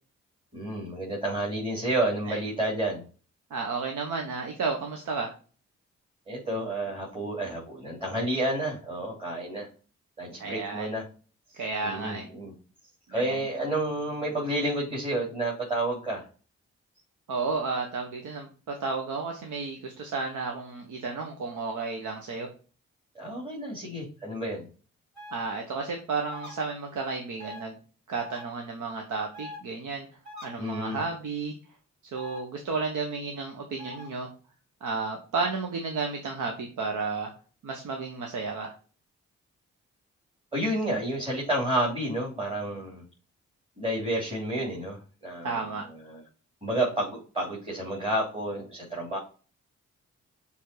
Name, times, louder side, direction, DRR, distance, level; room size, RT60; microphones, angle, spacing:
voice 1, 0.5-3.0 6.3-9.7 10.2-11.0 11.8-12.5 13.1-16.2 23.1-24.6 30.6-31.0 40.5-43.0 43.8-45.6 46.1-46.2 46.6-49.2, right 1 dB, 20° right, -5 dB, 3.3 m, -30 dB
voice 2, 3.5-5.3 10.4-10.9 11.6-12.3 13.1-13.4 17.3-22.5 25.3-27.8 28.1-30.1 30.4-31.5 32.1-34.3 34.8-37.3 37.6-38.7 45.4-45.9, right 4 dB, 75° right, 3 dB, 1.1 m, -32 dB
sound 1, 25.1-25.4 26.3-26.5 27.4-27.6 28.2-28.4 29.3-29.6 30.2-30.5 32.2-32.4 33.8-34.0, left 1 dB, 55° right, 3.5 m, -42 dB
6.7 x 3.6 x 4.6 m, 0.37 s
supercardioid pair, 50°, 31 cm